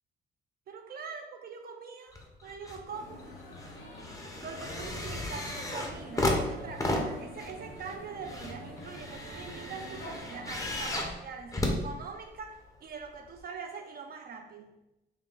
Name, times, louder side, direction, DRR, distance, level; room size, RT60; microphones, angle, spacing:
voice 1, 0.7-2.2 2.4-3.2 4.4-14.7, right 5 dB, 50° right, 4 dB, 0.4 m, -43 dB
sound 1, 2.1-2.8 3.2-12.6 13.4-13.5, left 1 dB, 15° left, 0.6 m, -34 dB
sound 2, 2.8-10.8, left 1 dB, 60° left, 1.4 m, -47 dB
sound 3, 4.9-11.1, right 4 dB, 85° right, 0.7 m, -52 dB
3.6 x 2.2 x 3.7 m, 0.97 s
cardioid pair, 90°, 20 cm